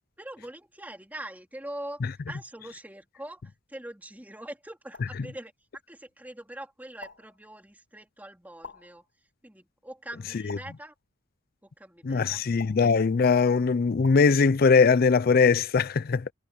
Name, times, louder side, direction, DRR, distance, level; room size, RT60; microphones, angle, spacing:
voice 1, 0.2-5.5 5.9-9.0 9.4-10.9 11.6-12.7, right 1 dB, 10° right, 3.2 m, -43 dB
sound 1, 4.9-5.3 7.0-7.4 8.6-9.0 10.5-10.9 12.6-13.0 14.0-14.3, left 3 dB, 65° left, 2.9 m, -46 dB
voice 2, 12.1-16.2, left 5 dB, 50° left, 0.4 m, -21 dB
head